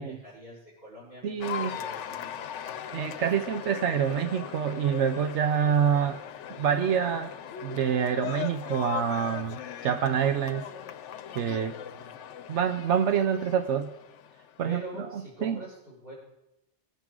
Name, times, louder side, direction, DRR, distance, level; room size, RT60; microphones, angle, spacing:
voice 1, 0.0-2.7 11.9-12.1 14.6-16.1, right 1 dB, 55° right, -11 dB, 5.4 m, -45 dB
voice 2, 1.2-1.7 2.9-6.2 6.6-7.3 7.6-10.7 11.3-11.8 12.5-13.9 14.6-15.6, right 8 dB, 80° right, 8 dB, 1.0 m, -27 dB
Cheering / Applause, 1.4-14.8, left 10 dB, 85° left, 1.0 m, -39 dB
22.0 x 9.2 x 3.8 m, 0.89 s
omnidirectional pair, 1.2 m